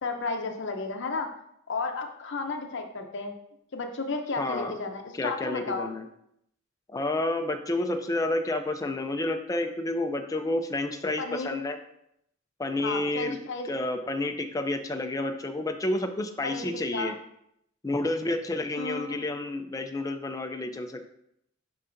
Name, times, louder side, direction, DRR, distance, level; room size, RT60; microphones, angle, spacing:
voice 1, 0.0-1.3 1.7-3.3 3.7-5.9 11.2-11.6 12.8-13.7 16.4-16.7 16.9-17.1 18.8-19.3, left 3 dB, 60° left, 4 dB, 0.7 m, -33 dB
voice 2, 4.4-4.8 5.2-6.1 6.9-11.8 12.6-13.4 13.6-17.1 17.8-21.0, left 2 dB, 15° left, 6 dB, 0.4 m, -30 dB
9.8 x 3.8 x 2.6 m, 0.75 s
head